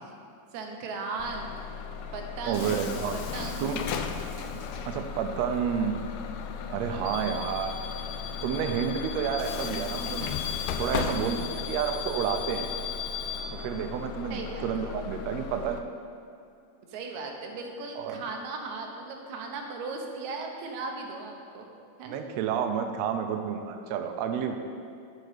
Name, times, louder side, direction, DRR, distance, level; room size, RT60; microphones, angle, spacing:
voice 1, 0.5-1.5 2.1-2.8 3.1-3.8 4.7-4.9 14.3-14.7 16.9-21.7 22.0-22.2, right 3 dB, 70° right, 2 dB, 2.1 m, -37 dB
Bus / Alarm, 1.2-15.8, left 7 dB, 80° left, 1.5 m, -35 dB
voice 2, 2.4-3.1 3.6-3.8 4.8-6.3 6.7-7.8 8.4-10.3 10.8-12.7 13.5-15.8 18.0-18.1 22.1-24.6, right 7 dB, 85° right, 6 dB, 1.5 m, -30 dB
12.0 x 5.3 x 5.0 m, 2.5 s
omnidirectional pair, 3.7 m